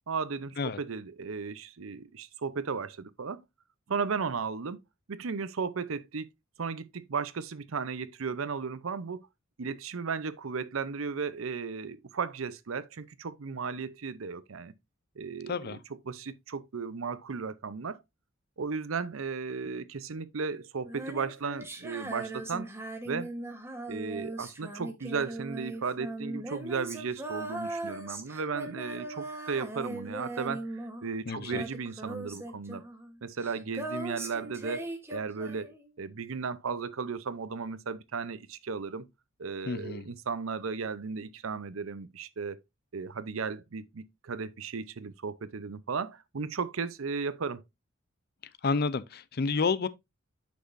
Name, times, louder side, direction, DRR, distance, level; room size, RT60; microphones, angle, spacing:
voice 1, 0.1-3.4 3.9-4.8 5.1-6.3 6.6-9.3 9.6-14.7 15.2-15.8 16.1-18.0 18.6-22.7 23.0-23.3 23.9-32.8 33.2-34.8 35.1-39.0 39.4-42.6 42.9-47.6, right 5 dB, 80° right, 0.6 m, -35 dB
voice 2, 15.5-15.8 31.3-31.6 39.7-40.1 48.6-49.9, left 4 dB, 50° left, 0.5 m, -30 dB
Female singing, 20.8-31.2 31.4-35.9, right 2 dB, 10° right, 1.2 m, -39 dB
8.4 x 6.1 x 2.6 m
head